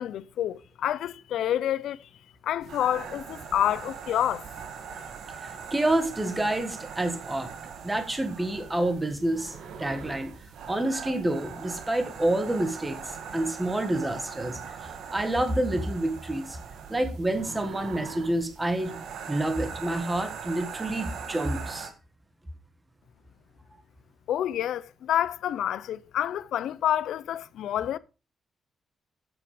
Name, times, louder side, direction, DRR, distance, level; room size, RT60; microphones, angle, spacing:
voice 1, 0.0-2.0 2.4-4.4 24.3-28.0, left 11 dB, 85° left, 0.6 m, -28 dB
sound 1, 2.6-21.9, right 6 dB, 70° right, 1.6 m, -41 dB
voice 2, 5.4-7.5 7.8-10.3 10.7-14.8 15.1-16.6 16.9-19.0 19.3-21.9, right 1 dB, 10° right, 1.4 m, -28 dB
9.4 x 8.1 x 5.0 m
wide cardioid pair, 170°, 0 cm